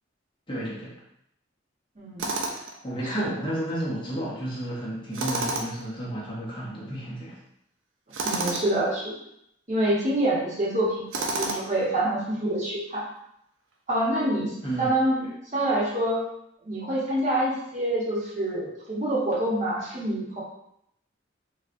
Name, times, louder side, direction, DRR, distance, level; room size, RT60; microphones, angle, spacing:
voice 1, 0.5-0.9 2.5-7.4 14.6-14.9 15.2-15.3, right 1 dB, 25° left, -6 dB, 0.8 m, -32 dB
voice 2, 2.0-2.3 3.2-3.3 5.1-5.2 8.2-9.1 9.7-13.1 13.9-15.2 15.5-16.2 16.6-20.4, right 1 dB, 40° right, -6 dB, 1.0 m, -26 dB
Tools, 2.2-2.8 5.1-5.9 8.1-8.7 11.1-11.8, right 2 dB, 80° right, 0.5 m, -29 dB
4.3 x 2.3 x 2.5 m, 0.76 s
head